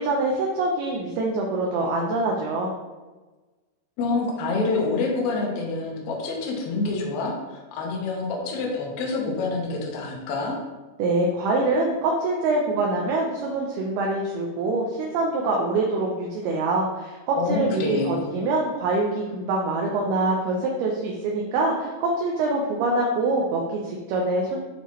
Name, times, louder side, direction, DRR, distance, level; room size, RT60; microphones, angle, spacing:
voice 1, 0.0-2.7 11.0-24.6, right 2 dB, 80° right, -1 dB, 2.5 m, -25 dB
voice 2, 4.0-10.6 17.4-18.3, left 3 dB, 75° left, -1 dB, 1.7 m, -27 dB
8.0 x 4.2 x 3.1 m, 1.2 s
omnidirectional pair, 4.8 m